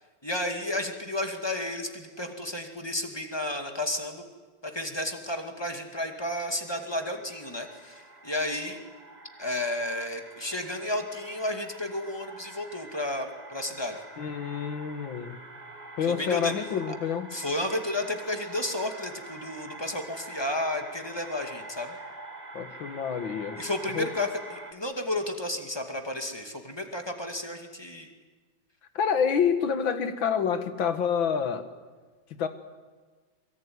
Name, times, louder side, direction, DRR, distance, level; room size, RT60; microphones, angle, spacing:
voice 1, 0.2-4.3 4.6-8.8 9.4-14.0 16.0-16.5 17.3-21.9 23.6-28.1, left 1 dB, 15° left, 4 dB, 2.3 m, -32 dB
sound 1, 6.6-24.7, right 2 dB, 20° right, 2.1 m, -46 dB
voice 2, 14.2-15.4 16.0-17.3 22.5-23.6 23.9-24.1 29.0-31.7 32.4-32.5, left 7 dB, 80° left, 10 dB, 2.3 m, -27 dB
23.5 x 22.5 x 9.6 m, 1.4 s
omnidirectional pair, 2.1 m